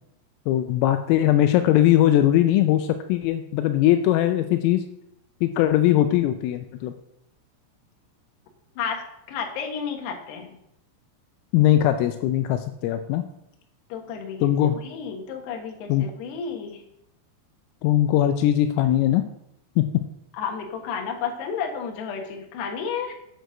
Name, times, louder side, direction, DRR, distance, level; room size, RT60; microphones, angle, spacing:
voice 1, 0.5-4.8 5.4-6.9 11.5-13.3 14.4-14.8 15.9-16.0 17.8-19.2 19.8-19.9, left 12 dB, 85° left, 7 dB, 3.1 m, -20 dB
voice 2, 8.8-10.5 13.9-14.5 14.8-16.8 20.4-23.1, left 6 dB, 65° left, 2 dB, 2.9 m, -32 dB
8.1 x 6.2 x 6.4 m, 0.79 s
omnidirectional pair, 5.9 m